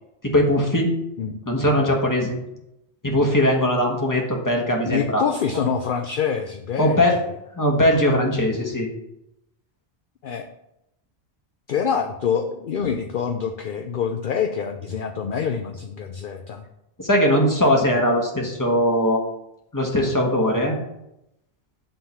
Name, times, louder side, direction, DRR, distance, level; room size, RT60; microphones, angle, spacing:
voice 1, 0.2-0.9 1.4-2.4 3.0-5.2 6.8-7.2 7.6-8.9 17.0-19.2 19.7-20.8, equal, 15° left, 0 dB, 1.5 m, -20 dB
voice 2, 4.9-7.0 10.2-10.4 11.7-16.6, left 7 dB, 55° left, 5 dB, 0.7 m, -26 dB
9.1 x 3.8 x 7.1 m, 0.85 s
omnidirectional pair, 1.1 m